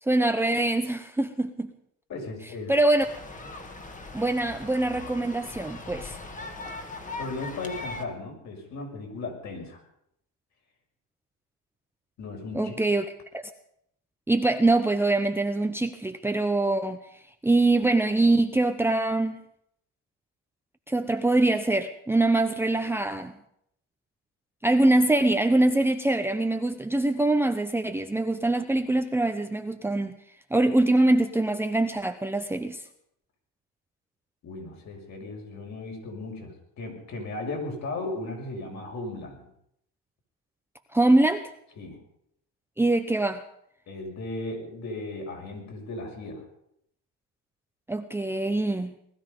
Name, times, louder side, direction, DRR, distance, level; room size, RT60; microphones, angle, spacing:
voice 1, 0.0-1.7 2.7-3.1 4.1-6.2 12.5-13.1 13.3-13.4 14.3-17.0 17.4-19.4 20.9-23.3 24.6-30.1 30.5-32.8 40.9-41.4 42.8-43.4 47.9-48.9, right 2 dB, 5° right, 7 dB, 0.9 m, -23 dB
voice 2, 2.1-2.7 7.2-9.8 12.2-12.8 34.4-39.5 41.8-42.0 43.9-46.5, left 2 dB, 50° left, 1 dB, 6.4 m, -36 dB
sound 1, 3.0-8.0, left 2 dB, 20° left, 2.1 m, -39 dB
20.0 x 13.0 x 5.4 m, 0.73 s
supercardioid pair, 105°, 35 cm